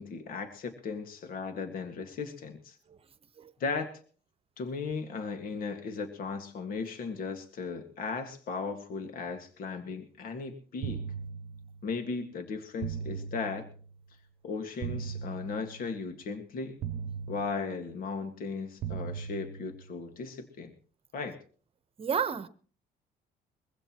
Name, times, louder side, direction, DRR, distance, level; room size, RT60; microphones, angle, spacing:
voice 1, 0.0-2.8 3.6-3.9 4.6-11.0 11.8-13.7 14.4-16.8 17.3-20.7 21.1-21.4, left 4 dB, 60° left, 1.9 m, -36 dB
sound 1, 10.8-12.0 12.8-14.0 14.8-16.0 16.8-18.0 18.8-20.0, right 7 dB, 60° right, 0.9 m, -39 dB
voice 2, 22.0-22.5, right 7 dB, 35° right, 1.1 m, -31 dB
22.5 x 16.0 x 3.0 m
cardioid pair, 110°, 17 cm